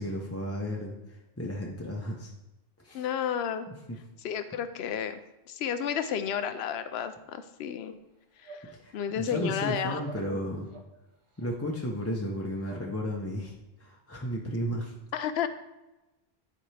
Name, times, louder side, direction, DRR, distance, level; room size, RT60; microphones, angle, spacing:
voice 1, 0.0-2.3 2.8-3.0 3.9-4.0 8.8-10.7 11.4-13.5 13.8-14.9, equal, 15° left, -2 dB, 0.6 m, -33 dB
voice 2, 2.9-3.7 4.2-5.2 5.5-8.0 8.4-10.0 10.3-10.4 15.1-15.5, left 8 dB, 85° left, 11 dB, 0.8 m, -32 dB
sound 1, 8.4-8.7 9.2-9.5 10.0-10.3 10.7-10.9 11.4-11.5 12.0-12.1 12.6-12.9, right 3 dB, 35° right, 0.7 m, -46 dB
10.5 x 4.4 x 3.3 m, 1.0 s
omnidirectional pair, 1.0 m